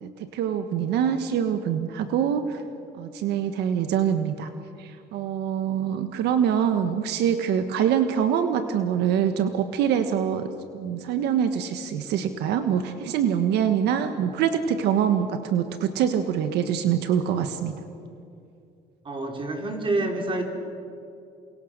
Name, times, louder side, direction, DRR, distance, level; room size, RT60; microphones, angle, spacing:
voice 1, 0.0-2.6 2.9-4.5 4.8-10.5 10.7-17.7, right 8 dB, 80° right, 8 dB, 1.5 m, -24 dB
voice 2, 19.0-20.4, right 2 dB, 30° right, 3 dB, 4.7 m, -27 dB
29.0 x 25.0 x 6.7 m, 2.6 s
cardioid pair, 110°, 17 cm